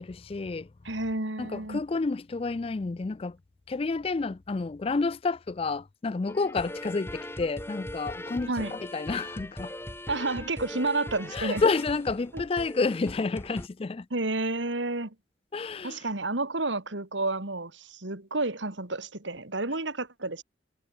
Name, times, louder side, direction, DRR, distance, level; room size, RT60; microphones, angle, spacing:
voice 1, 0.0-0.7 1.4-3.4 3.7-9.7 11.3-14.1 15.5-16.0, left 3 dB, 30° left, 0.4 m, -30 dB
voice 2, 0.8-1.8 8.5-8.8 10.1-11.6 12.3-12.4 14.1-15.1 15.8-20.4, right 2 dB, 80° right, 2.7 m, -30 dB
sound 1, 6.3-13.7, left 1 dB, 15° left, 3.9 m, -40 dB
head